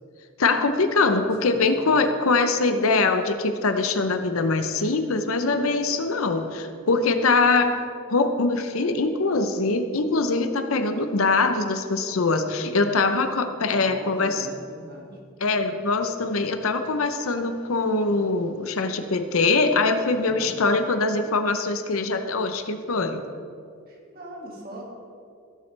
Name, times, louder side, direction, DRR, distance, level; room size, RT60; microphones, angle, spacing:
voice 1, 0.4-7.8 8.1-14.5 15.4-23.2, left 3 dB, 80° left, 8 dB, 0.7 m, -23 dB
voice 2, 1.4-2.0 13.6-15.2 20.1-21.2 23.9-24.8, equal, 45° right, -2 dB, 2.0 m, -40 dB
16.5 x 7.2 x 3.3 m, 2.3 s
head